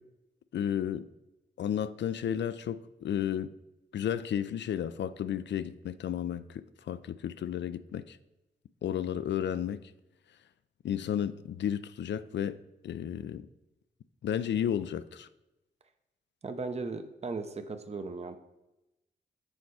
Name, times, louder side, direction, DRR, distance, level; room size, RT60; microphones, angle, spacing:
voice 1, 0.5-1.1 1.6-3.5 3.9-8.2 8.8-9.9 10.8-13.5 14.2-15.3, left 9 dB, 65° left, 0.4 m, -33 dB
voice 2, 16.4-18.4, right 3 dB, 35° right, 0.7 m, -37 dB
6.4 x 4.2 x 4.7 m
supercardioid pair, 40°, 20 cm